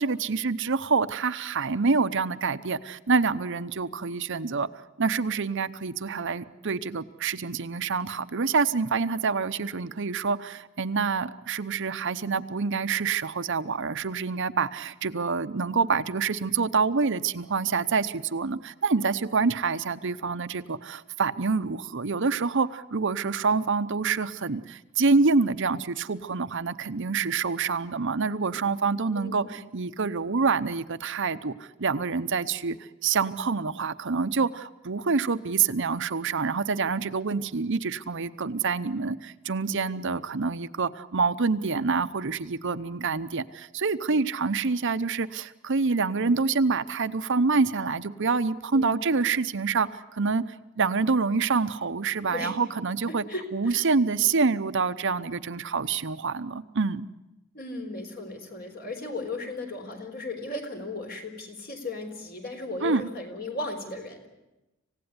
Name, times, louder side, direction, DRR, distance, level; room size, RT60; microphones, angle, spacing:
voice 1, 0.0-4.7 5.0-31.5 31.8-32.8 33.0-50.4 50.8-53.2 53.5-57.1 62.8-63.0, right 4 dB, 60° right, 11 dB, 0.8 m, -26 dB
voice 2, 29.1-29.6 48.7-49.0 52.3-52.5 53.1-53.8 57.5-64.3, left 2 dB, 50° left, 4 dB, 4.3 m, -36 dB
26.5 x 17.0 x 9.7 m, 0.99 s
head